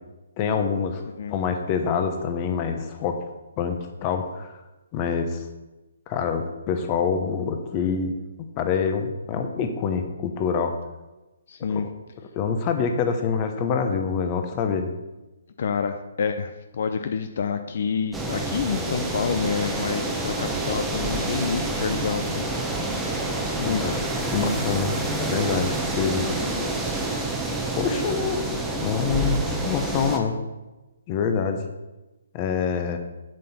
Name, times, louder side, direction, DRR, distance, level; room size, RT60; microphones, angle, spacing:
voice 1, 0.4-1.0 1.3-3.2 3.6-4.5 4.9-5.4 6.1-8.1 8.6-10.7 11.7-11.8 12.4-15.0 23.6-23.9 24.3-26.2 27.7-28.4 28.8-30.4 31.1-31.7 32.3-33.0, left 6 dB, 25° left, 6 dB, 0.9 m, -26 dB
voice 2, 11.5-11.9 15.6-22.5 23.6-24.0, left 6 dB, 55° left, 8 dB, 0.6 m, -28 dB
sound 1, 18.1-30.2, right 2 dB, 5° right, 0.9 m, -28 dB
7.7 x 7.5 x 4.3 m, 1.1 s
hypercardioid pair, 155°, 0 cm